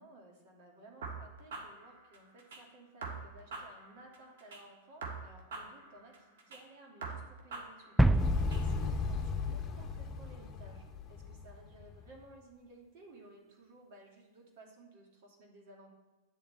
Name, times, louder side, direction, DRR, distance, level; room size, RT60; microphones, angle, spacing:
voice 1, 0.0-15.9, right 2 dB, 55° right, -1 dB, 2.7 m, -57 dB
sound 1, 1.0-2.6 3.0-4.6 5.0-6.6 7.0-8.6, right 4 dB, 70° right, 1.7 m, -45 dB
sound 2, 8.0-10.5, right 1 dB, ahead, 0.3 m, -30 dB
Motorcycle, 8.2-12.1, left 5 dB, 25° left, 1.2 m, -36 dB
9.9 x 7.1 x 4.3 m, 1.2 s
hypercardioid pair, 100°, 0 cm